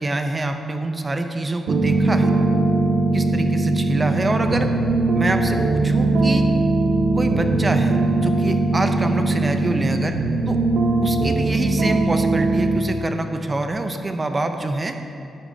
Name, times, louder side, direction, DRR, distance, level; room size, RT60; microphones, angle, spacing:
voice 1, 0.0-2.3 3.1-4.7 5.1-6.5 7.1-7.9 8.2-10.2 10.5-10.6 11.0-15.0, right 2 dB, 20° right, 6 dB, 0.6 m, -25 dB
sound 1, 1.7-12.8, right 2 dB, 65° right, 0.9 m, -20 dB
11.0 x 10.0 x 2.7 m, 2.7 s
wide cardioid pair, 135°, 0 cm